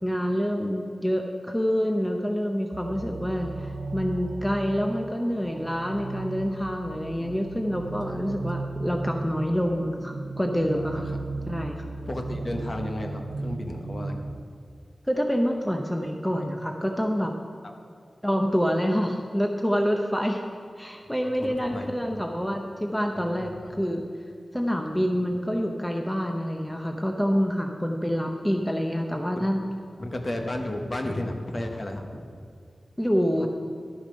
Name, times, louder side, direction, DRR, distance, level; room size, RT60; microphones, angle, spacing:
voice 1, 0.0-11.1 11.5-11.8 15.1-17.3 18.2-20.4 20.8-24.0 24.5-29.6 33.0-33.5, equal, 5° left, 3 dB, 0.7 m, -27 dB
sound 1, 2.7-14.4, right 3 dB, 60° right, 0.5 m, -36 dB
voice 2, 7.6-8.2 10.8-11.0 12.1-14.4 21.4-22.1 23.1-23.9 27.3-27.4 29.4-29.5 30.0-32.2 33.4-33.5, left 1 dB, 35° left, 3 dB, 1.1 m, -34 dB
12.0 x 7.1 x 5.1 m, 2.4 s
wide cardioid pair, 90°, 0 cm